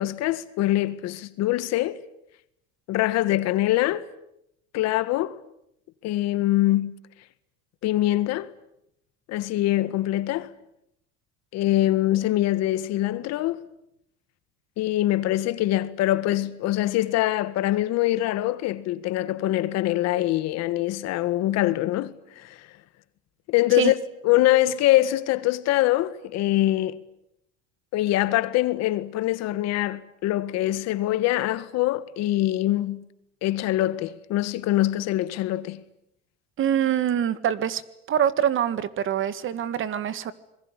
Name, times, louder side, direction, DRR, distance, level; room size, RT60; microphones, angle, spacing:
voice 1, 0.0-2.0 2.9-4.1 4.7-5.4 6.0-7.0 7.8-8.5 9.3-10.5 11.5-13.6 14.8-22.6 23.5-24.0 24.2-27.0 27.9-33.0 33.4-35.8, left 15 dB, 60° left, 1.8 m, -24 dB
voice 2, 36.6-37.8 38.1-40.3, right 10 dB, 45° right, 1.8 m, -24 dB
26.0 x 22.0 x 9.9 m
cardioid pair, 125°, 29 cm